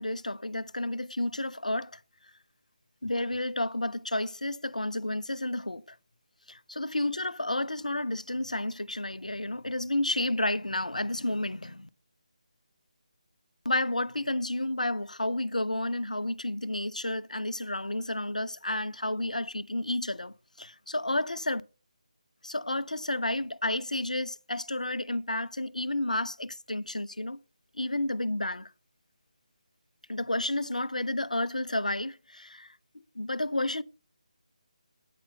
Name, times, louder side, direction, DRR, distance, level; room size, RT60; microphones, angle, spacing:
voice 1, 0.0-2.0 3.0-5.8 6.5-11.9 13.6-21.6 22.4-27.4 27.7-28.7 30.1-32.7 33.2-33.8, left 1 dB, 80° left, 0.5 m, -31 dB
9.2 x 4.3 x 6.8 m
figure-of-eight pair, 155°, 4 cm